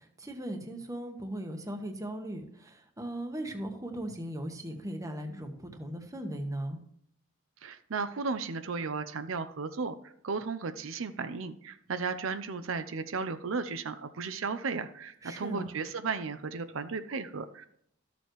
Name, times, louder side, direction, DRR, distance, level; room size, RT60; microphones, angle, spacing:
voice 1, 0.0-6.8 15.2-15.7, right 1 dB, 15° right, 5 dB, 1.1 m, -38 dB
voice 2, 7.6-17.7, right 4 dB, 75° right, 10 dB, 0.6 m, -35 dB
13.0 x 6.8 x 3.1 m, 0.69 s
head